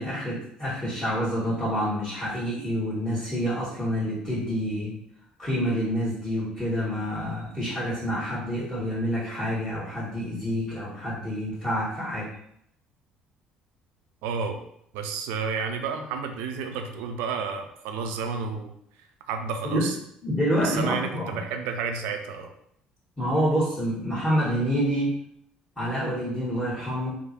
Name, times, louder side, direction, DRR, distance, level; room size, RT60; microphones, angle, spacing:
voice 1, 0.0-4.9 5.4-12.3 19.6-19.9 20.2-21.4 23.2-25.1 25.8-27.1, equal, 10° left, -10 dB, 1.4 m, -27 dB
voice 2, 14.2-14.6 14.9-18.7 19.3-20.0 20.6-22.5, right 5 dB, 60° right, 5 dB, 0.4 m, -31 dB
3.1 x 2.1 x 2.8 m, 0.72 s
figure-of-eight pair, 55°, 4 cm